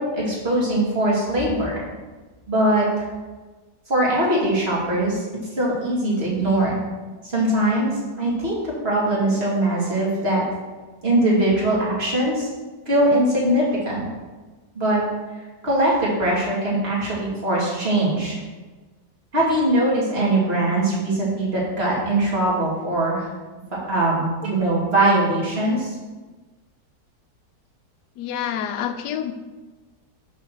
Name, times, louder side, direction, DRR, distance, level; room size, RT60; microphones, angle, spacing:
voice 1, 0.0-1.8 2.5-3.1 3.9-5.2 5.6-6.8 7.2-7.9 8.2-10.4 11.0-12.5 12.9-14.0 14.7-15.0 15.6-18.4 19.3-23.3 23.9-25.9, right 1 dB, 35° right, -5 dB, 2.4 m, -21 dB
voice 2, 28.2-29.3, left 9 dB, 80° left, 7 dB, 1.2 m, -27 dB
5.9 x 4.8 x 6.2 m, 1.3 s
omnidirectional pair, 1.8 m